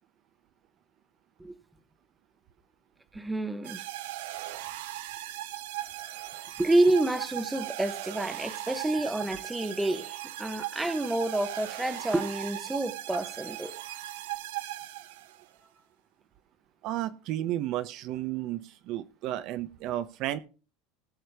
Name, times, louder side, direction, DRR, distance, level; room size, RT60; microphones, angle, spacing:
voice 1, 3.1-3.8 6.6-13.7, right 2 dB, 5° right, 0.9 m, -28 dB
sound 1, 3.6-15.5, right 14 dB, 80° right, 1.2 m, -38 dB
voice 2, 16.8-20.4, right 13 dB, 45° right, 0.6 m, -33 dB
19.0 x 6.4 x 3.4 m
supercardioid pair, 170°, 0 cm